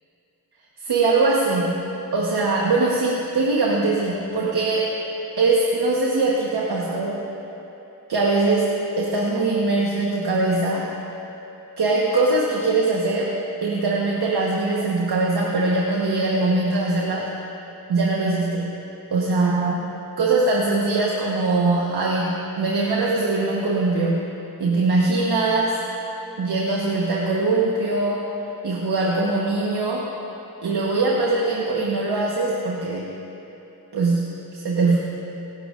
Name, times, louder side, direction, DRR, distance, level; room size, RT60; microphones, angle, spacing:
voice 1, 0.8-1.9 2.1-4.9 5.4-7.2 8.1-10.9 11.8-13.3 13.6-17.3 17.9-18.8 19.1-19.8 20.2-24.3 24.6-25.8 26.4-28.3 28.6-30.1 30.6-33.1 33.9-35.0, right 3 dB, 85° right, -3 dB, 1.3 m, -22 dB
17.0 x 15.0 x 2.5 m, 3.0 s
cardioid pair, 50°, 38 cm